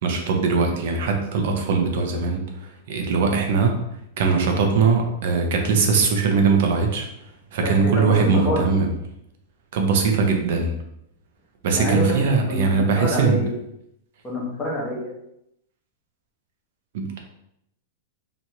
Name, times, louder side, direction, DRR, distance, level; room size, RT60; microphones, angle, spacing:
voice 1, 0.0-3.8 4.2-7.1 7.5-8.9 9.7-10.8 11.6-13.4 16.9-17.2, right 4 dB, 55° right, 3 dB, 0.8 m, -21 dB
voice 2, 7.9-8.7 11.7-13.5 14.2-15.1, left 1 dB, 15° left, -5 dB, 1.1 m, -27 dB
3.1 x 2.6 x 4.4 m, 0.78 s
supercardioid pair, 165°, 0 cm